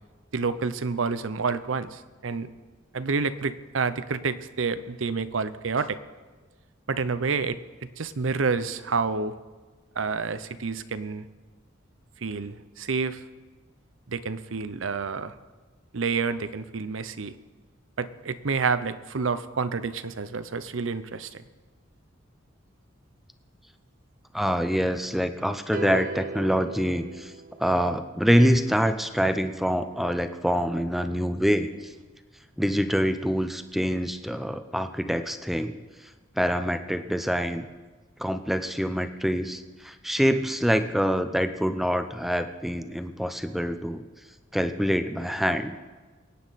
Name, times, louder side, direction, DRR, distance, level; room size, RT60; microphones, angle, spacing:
voice 1, 0.3-2.5 2.9-6.0 6.9-7.6 8.0-9.4 10.0-11.2 12.2-13.2 14.1-15.3 15.9-17.3 18.0-21.4, right 4 dB, 75° right, 13 dB, 0.7 m, -29 dB
voice 2, 24.3-27.3 27.6-31.9 32.6-35.8 36.4-37.7 38.2-44.0 44.5-45.8, equal, ahead, 9 dB, 0.7 m, -25 dB
sound 1, 25.7-28.0, right 4 dB, 45° right, 0.4 m, -37 dB
23.5 x 9.4 x 4.1 m, 1.3 s
head